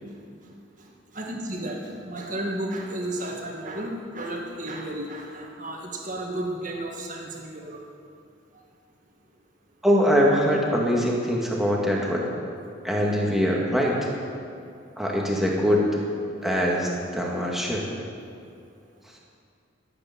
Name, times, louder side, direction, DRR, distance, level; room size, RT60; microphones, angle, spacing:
voice 1, 0.0-0.4 1.1-7.8, right 1 dB, 40° right, 0 dB, 2.0 m, -33 dB
voice 2, 9.8-12.3 12.8-14.0 15.0-15.8 16.4-17.9, equal, ahead, -3 dB, 2.0 m, -23 dB
15.0 x 8.6 x 8.8 m, 2.4 s
head